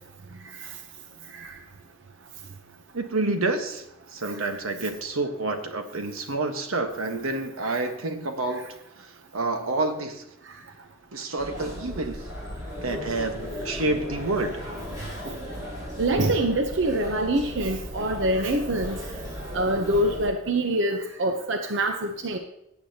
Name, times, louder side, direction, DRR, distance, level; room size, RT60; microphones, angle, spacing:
voice 1, 2.9-8.7 9.0-10.2 11.1-12.2 12.8-14.7, right 2 dB, 90° right, 6 dB, 1.3 m, -28 dB
sound 1, 11.4-20.3, equal, 15° right, 4.1 m, -36 dB
voice 2, 16.0-19.0 19.5-22.4, right 1 dB, 60° right, 5 dB, 0.8 m, -25 dB
17.0 x 8.4 x 2.8 m, 0.82 s
head